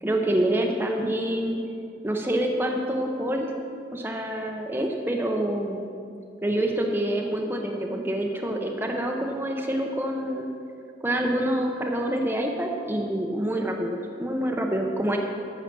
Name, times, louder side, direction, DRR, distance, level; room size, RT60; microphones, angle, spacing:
voice 1, 0.0-1.6 2.0-3.5 3.9-5.9 6.4-10.5 11.0-15.2, right 1 dB, 10° right, 1 dB, 0.7 m, -26 dB
12.0 x 5.7 x 8.6 m, 2.6 s
head